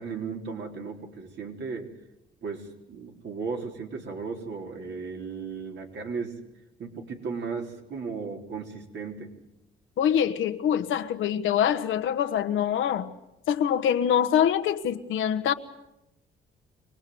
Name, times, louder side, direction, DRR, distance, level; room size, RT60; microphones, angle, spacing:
voice 1, 0.0-1.9 2.4-6.4 6.8-9.3, right 5 dB, 65° right, 3.9 m, -35 dB
voice 2, 10.0-13.1 13.5-15.5, left 9 dB, 80° left, 1.4 m, -24 dB
25.0 x 19.0 x 7.9 m
cardioid pair, 90°, 20 cm